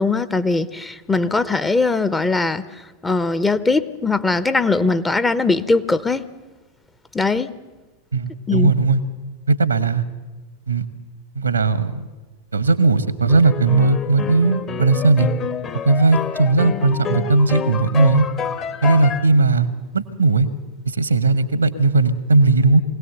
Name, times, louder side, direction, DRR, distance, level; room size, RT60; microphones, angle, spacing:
voice 1, 0.0-2.6 3.0-6.3 7.1-7.5 8.5-8.7, left 3 dB, 10° left, 13 dB, 0.8 m, -20 dB
voice 2, 8.1-9.0 9.5-10.0 10.7-10.8 11.3-12.1 12.5-15.3 15.8-18.3 18.8-19.7 19.9-20.5 20.9-22.8, right 3 dB, 80° right, 15 dB, 1.1 m, -17 dB
sound 1, 13.3-19.3, left 6 dB, 30° left, 1.1 m, -28 dB
23.0 x 17.5 x 6.9 m, 1.2 s
figure-of-eight pair, 90°, 0 cm